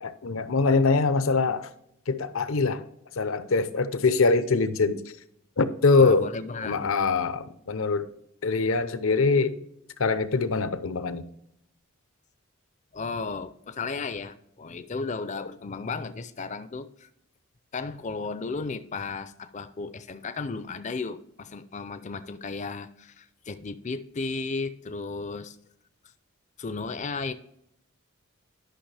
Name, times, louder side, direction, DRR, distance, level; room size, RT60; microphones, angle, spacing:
voice 1, 0.0-1.7 2.1-2.8 3.2-5.0 5.6-6.3 6.6-8.1 8.4-9.6 10.0-11.2, left 4 dB, 75° left, 0.7 m, -23 dB
voice 2, 6.0-6.9 12.9-17.1 17.7-25.6 26.6-27.3, left 4 dB, 35° left, 0.5 m, -34 dB
11.5 x 5.9 x 3.3 m
head